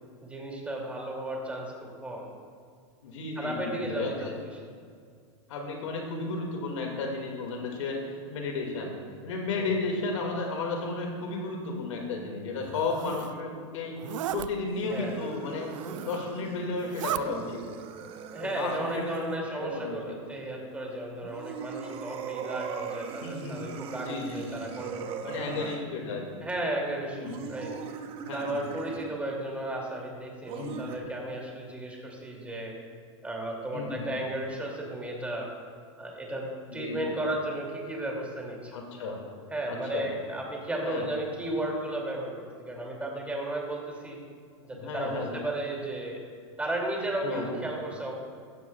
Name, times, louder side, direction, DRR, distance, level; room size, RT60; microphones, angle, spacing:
voice 1, 0.2-2.3 3.4-4.6 9.6-9.7 14.9-15.2 18.3-25.7 26.4-27.7 28.3-32.7 33.2-35.5 36.0-38.8 39.5-44.2 44.6-46.2 46.6-48.2, right 1 dB, 10° right, -2 dB, 2.5 m, -34 dB
voice 2, 3.0-4.3 5.5-8.9 9.2-14.0 14.3-17.6 18.4-20.2 23.2-23.6 24.0-24.6 25.3-26.4 27.2-27.4 28.2-28.6 30.5-30.8 33.7-34.1 36.7-37.0 38.7-39.2 39.7-40.1 40.8-41.0 44.7-45.4 47.2-47.5, left 3 dB, 75° left, 1 dB, 2.1 m, -33 dB
Zipper (clothing), 12.6-13.4 14.0-14.5 15.6-16.3 16.7-17.2, right 13 dB, 80° right, 0.4 m, -36 dB
sound 1, 14.6-19.4 21.2-25.8 27.2-29.2 30.5-31.0, right 7 dB, 35° right, 0.9 m, -40 dB
15.5 x 12.0 x 2.3 m, 2.1 s
hypercardioid pair, 125°, 16 cm